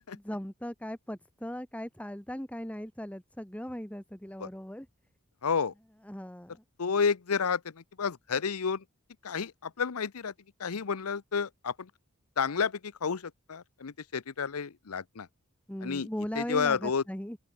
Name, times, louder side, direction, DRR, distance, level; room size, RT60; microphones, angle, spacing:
voice 1, 0.2-4.9 6.0-6.6 15.7-17.4, equal, 5° left, 1.4 m, -38 dB
voice 2, 5.4-5.7 6.8-8.8 9.2-10.3 10.6-11.9 12.4-15.3 15.8-16.1 16.3-17.0, left 6 dB, 80° left, 0.7 m, -31 dB
open air
head